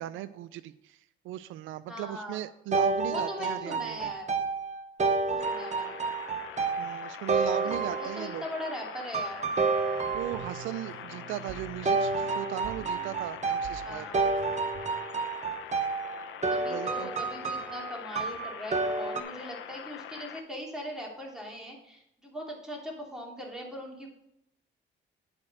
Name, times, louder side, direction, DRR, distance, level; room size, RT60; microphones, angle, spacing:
voice 1, 0.0-4.1 6.8-8.4 10.1-14.1 16.7-17.1, right 13 dB, 90° right, 14 dB, 0.4 m, -37 dB
voice 2, 1.9-2.4 3.1-4.4 5.3-6.0 7.6-9.4 13.8-14.2 16.5-24.1, equal, 5° right, -2 dB, 2.9 m, -40 dB
sound 1, 2.7-8.5 9.1-10.8 11.9-19.2, right 4 dB, 35° right, 1.0 m, -30 dB
sound 2, 5.4-20.4, left 9 dB, 80° left, 0.8 m, -44 dB
sound 3, 9.8-14.9, right 7 dB, 65° right, 2.2 m, -47 dB
9.8 x 4.4 x 6.1 m, 0.78 s
cardioid pair, 90°, 20 cm